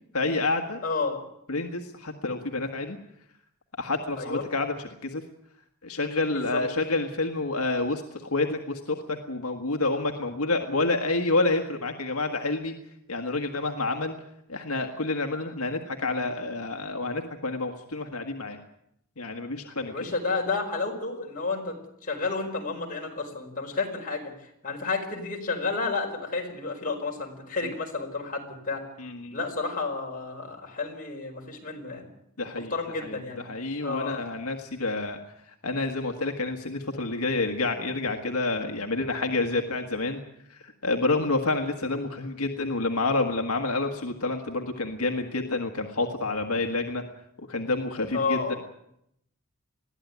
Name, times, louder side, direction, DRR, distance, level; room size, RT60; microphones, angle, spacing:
voice 1, 0.1-0.8 1.5-3.0 3.8-5.2 5.8-12.7 13.1-14.1 14.5-18.6 19.2-20.1 27.6-27.7 29.0-29.4 32.4-32.7 33.0-35.2 35.6-40.2 40.5-47.0 47.5-48.5, left 2 dB, 75° left, 4 dB, 1.7 m, -28 dB
voice 2, 0.8-1.2 4.2-4.4 6.3-6.6 19.9-21.8 22.0-24.3 24.6-28.8 29.3-32.1 32.5-33.4 33.8-34.2 48.1-48.6, left 4 dB, 40° left, 1 dB, 4.8 m, -31 dB
21.5 x 15.0 x 9.5 m, 0.77 s
head